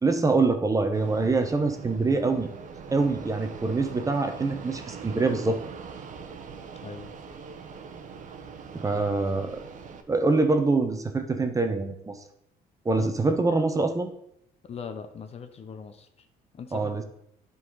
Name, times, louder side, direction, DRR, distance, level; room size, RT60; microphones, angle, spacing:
voice 1, 0.0-2.5 2.9-5.6 8.7-9.6 10.1-12.2 12.8-14.1 16.7-17.0, right 3 dB, 20° right, 7 dB, 0.8 m, -25 dB
Fixed-wing aircraft airplane, 0.9-10.0, right 6 dB, 50° right, 0.9 m, -42 dB
voice 2, 6.8-7.1 13.0-13.1 14.7-16.1 16.5-17.0, left 5 dB, 35° left, 8 dB, 0.7 m, -40 dB
10.0 x 4.0 x 3.9 m, 0.74 s
cardioid pair, 110°, 17 cm